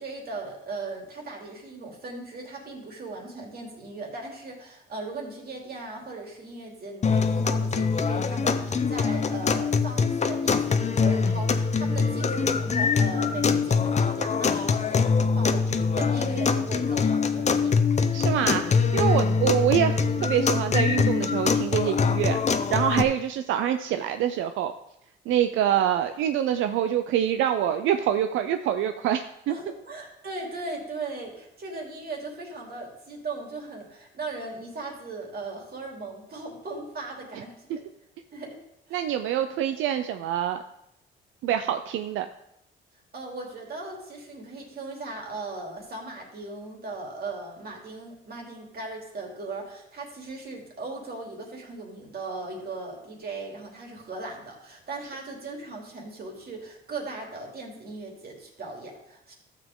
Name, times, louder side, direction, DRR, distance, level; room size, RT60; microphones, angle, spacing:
voice 1, 0.0-17.7 29.5-37.8 38.3-38.6 38.9-39.0 43.1-59.4, right 3 dB, 50° right, 0 dB, 3.1 m, -38 dB
sound 1, 7.0-23.0, left 5 dB, 35° left, 0.8 m, -24 dB
voice 2, 18.1-22.4 22.7-24.7 25.3-29.5 38.9-40.6 41.4-42.3, right 10 dB, 85° right, 8 dB, 0.5 m, -25 dB
13.0 x 7.4 x 3.7 m, 0.82 s
cardioid pair, 90°, 20 cm